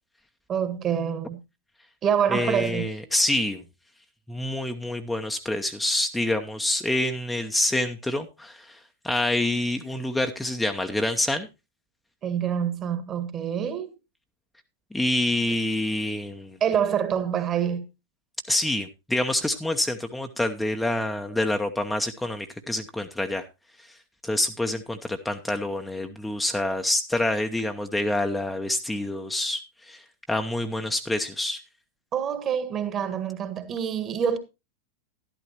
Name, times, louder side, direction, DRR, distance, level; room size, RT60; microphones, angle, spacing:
voice 1, 0.5-1.4 2.0-2.9 12.2-13.9 16.6-17.9 32.1-34.4, right 8 dB, 30° right, 1.7 m, -26 dB
voice 2, 2.3-3.6 4.3-11.5 14.9-16.6 18.5-23.4 23.8-24.0 24.2-31.6, left 1 dB, 5° left, 0.9 m, -27 dB
12.5 x 12.0 x 3.0 m
figure-of-eight pair, 90°, 0 cm